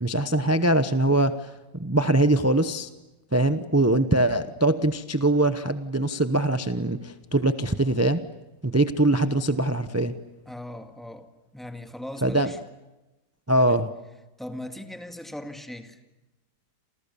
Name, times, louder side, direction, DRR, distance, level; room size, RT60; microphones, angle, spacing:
voice 1, 0.0-1.5 1.8-2.9 3.3-8.2 8.6-10.2 12.2-12.5 13.5-13.9, right 1 dB, 20° right, 10 dB, 0.4 m, -22 dB
voice 2, 10.5-12.6 13.5-13.8 14.4-16.0, left 1 dB, ahead, 5 dB, 1.9 m, -39 dB
29.0 x 28.5 x 7.0 m, 1.1 s
omnidirectional pair, 2.0 m